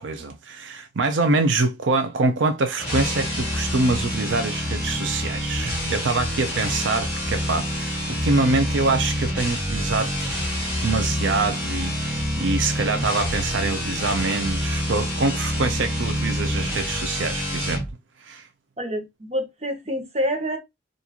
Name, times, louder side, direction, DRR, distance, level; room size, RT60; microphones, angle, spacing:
voice 1, 0.0-10.5 10.8-17.8 18.2-18.5, right 3 dB, 80° right, 0.6 m, -25 dB
sound 1, 2.8-17.9, equal, 5° right, 1.7 m, -27 dB
voice 2, 18.8-20.6, equal, 35° right, 0.8 m, -27 dB
3.8 x 2.5 x 2.9 m
head